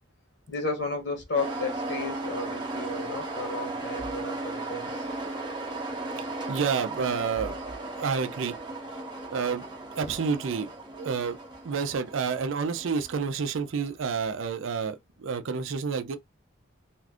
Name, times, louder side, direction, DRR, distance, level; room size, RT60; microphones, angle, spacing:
voice 1, 0.5-5.1, left 3 dB, 60° left, 1.0 m, -33 dB
sound 1, 1.4-14.1, right 2 dB, 20° right, 0.7 m, -36 dB
voice 2, 6.2-7.5 8.0-8.6 9.3-9.7 9.9-11.4 11.6-16.2, right 5 dB, 75° right, 0.5 m, -29 dB
2.5 x 2.4 x 3.4 m
head